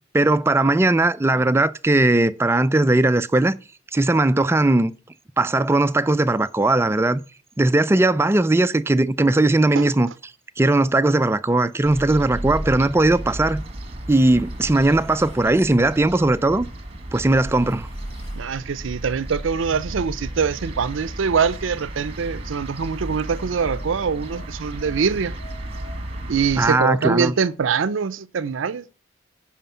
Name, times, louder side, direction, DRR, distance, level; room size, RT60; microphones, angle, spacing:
voice 1, 0.1-3.6 3.9-4.9 5.4-7.2 7.6-10.1 10.6-13.6 14.1-16.7 17.1-17.9 26.6-27.3, right 2 dB, 15° right, 0.3 m, -18 dB
sound 1, 11.8-26.7, right 1 dB, 30° right, 1.3 m, -34 dB
sound 2, 13.2-15.5 16.5-18.5 20.2-22.5 23.2-26.7, left 1 dB, 80° left, 3.4 m, -52 dB
voice 2, 18.3-25.3 26.3-28.9, right 6 dB, 80° right, 0.5 m, -24 dB
9.2 x 5.1 x 5.5 m
head